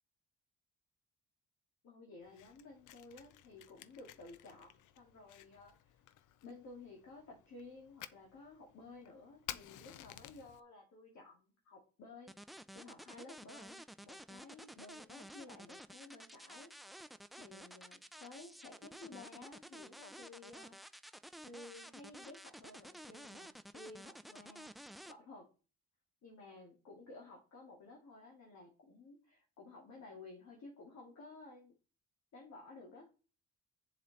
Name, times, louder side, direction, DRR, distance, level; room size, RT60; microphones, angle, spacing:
voice 1, 1.8-6.0 6.4-12.3 12.7-16.7 17.4-20.8 21.4-24.7 25.1-25.5 26.2-31.7 32.3-33.1, left 3 dB, 65° left, -2 dB, 2.6 m, -54 dB
Fire, 2.2-10.6, left 12 dB, 85° left, 0.6 m, -54 dB
sound 1, 12.3-25.1, equal, ahead, 0.5 m, -52 dB
7.8 x 7.2 x 4.2 m, 0.35 s
cardioid pair, 90°, 30 cm